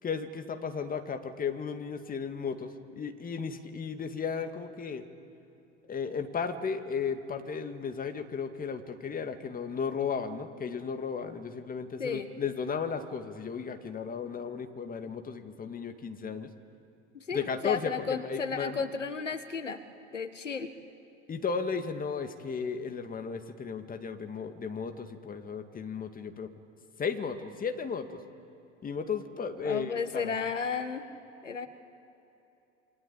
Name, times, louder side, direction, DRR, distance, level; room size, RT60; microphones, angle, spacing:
voice 1, 0.0-5.0 5.8-16.5 17.3-18.8 21.3-26.5 27.0-28.2 28.8-30.3, left 6 dB, 25° left, 6 dB, 2.3 m, -35 dB
voice 2, 17.1-19.8 20.1-20.7 29.6-31.0 31.4-31.7, left 5 dB, 85° left, 10 dB, 1.5 m, -33 dB
28.5 x 24.0 x 8.8 m, 2.9 s
figure-of-eight pair, 75°, 37 cm